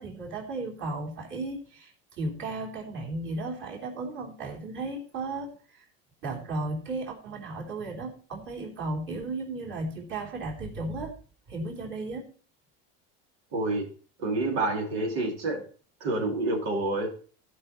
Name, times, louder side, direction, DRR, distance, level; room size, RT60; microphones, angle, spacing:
voice 1, 0.0-1.9 2.2-5.8 6.2-11.1 11.5-12.3, right 2 dB, 40° right, 3.2 m, -35 dB
voice 2, 13.5-13.9 14.2-15.7 16.0-17.1, right 2 dB, 90° right, 2.8 m, -28 dB
14.5 x 5.6 x 4.3 m
supercardioid pair, 130°, 30 cm